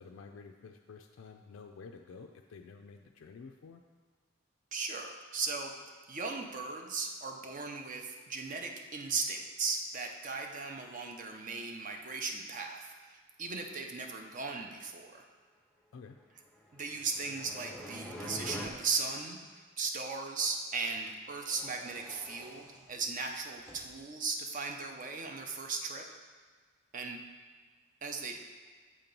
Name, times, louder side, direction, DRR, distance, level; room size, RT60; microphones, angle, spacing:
voice 1, 0.0-3.8 15.9-16.2, left 5 dB, 80° left, 4 dB, 0.4 m, -50 dB
voice 2, 4.7-5.7 6.1-13.1 13.4-15.2 16.7-26.0 26.9-27.2 28.0-28.4, right 4 dB, 40° right, 3 dB, 0.5 m, -37 dB
sound 1, 16.8-18.7, equal, 5° left, 0.5 m, -43 dB
sound 2, 17.3-19.1 21.3-24.0, equal, 20° right, 0.9 m, -54 dB
7.4 x 2.9 x 5.2 m, 1.5 s
head